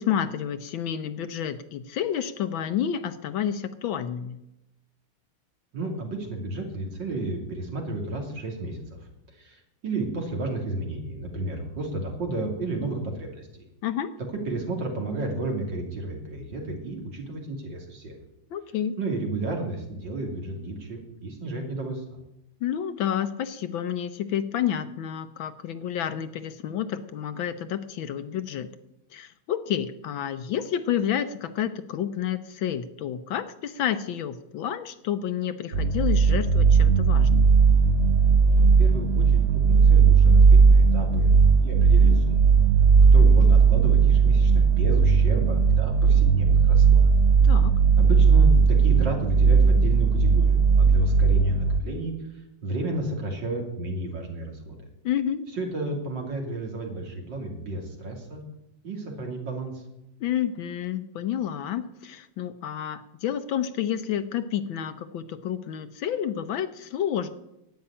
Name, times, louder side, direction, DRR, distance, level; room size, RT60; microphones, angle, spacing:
voice 1, 0.0-4.4 13.8-14.1 18.5-19.0 22.6-28.7 29.1-37.5 47.4-47.7 55.0-55.5 60.2-67.3, left 9 dB, 70° left, 11 dB, 1.5 m, -30 dB
voice 2, 5.7-8.8 9.4-13.7 14.3-18.1 19.0-22.0 38.5-42.5 43.1-47.1 48.0-52.1 52.6-54.8 55.5-58.4 58.8-59.8, right 2 dB, 55° right, 2 dB, 3.4 m, -32 dB
sound 1, 35.7-51.8, right 5 dB, 85° right, 0.6 m, -17 dB
11.5 x 8.8 x 9.8 m, 0.87 s
omnidirectional pair, 2.3 m